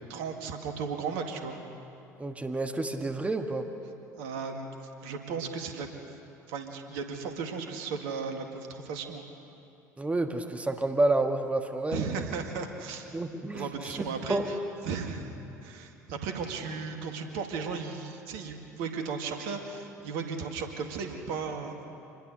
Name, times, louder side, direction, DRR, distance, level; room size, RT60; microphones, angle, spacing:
voice 1, 0.1-1.6 4.2-4.7 5.0-6.2 6.5-9.3 11.9-13.1 13.5-14.6 14.8-15.4 15.6-21.8, right 5 dB, 60° right, 4 dB, 2.1 m, -35 dB
voice 2, 2.2-3.7 10.0-12.1 13.1-14.5, right 2 dB, 15° right, 5 dB, 1.5 m, -29 dB
26.5 x 21.0 x 6.7 m, 2.8 s
figure-of-eight pair, 60°, 9 cm